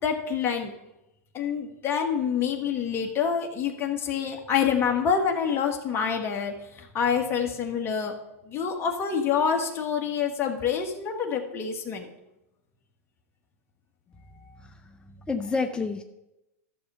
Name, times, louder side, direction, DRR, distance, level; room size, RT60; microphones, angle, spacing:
voice 1, 0.0-0.7 1.3-8.1 8.5-12.1, left 7 dB, 30° left, 2 dB, 1.6 m, -27 dB
voice 2, 14.6-16.0, left 4 dB, 10° left, 6 dB, 0.7 m, -30 dB
12.0 x 6.8 x 5.5 m, 0.91 s
hypercardioid pair, 115°, 8 cm